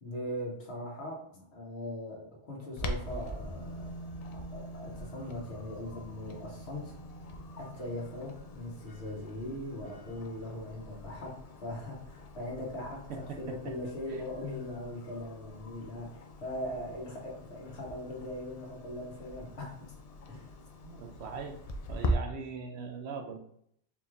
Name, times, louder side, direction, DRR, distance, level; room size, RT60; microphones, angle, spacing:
voice 1, 0.0-4.0 4.3-7.0 7.5-19.8 20.3-20.5 22.0-22.1, left 1 dB, 65° left, -3 dB, 1.4 m, -40 dB
Clock, 2.8-22.1, left 1 dB, 80° left, 0.3 m, -43 dB
sound 1, 3.4-12.5 12.8-12.9, right 2 dB, 35° left, 1.3 m, -48 dB
voice 2, 13.1-13.7 14.1-14.2 20.8-21.6 21.9-23.4, right 5 dB, 70° right, 4 dB, 0.8 m, -40 dB
4.4 x 3.2 x 2.5 m, 0.67 s
omnidirectional pair, 1.2 m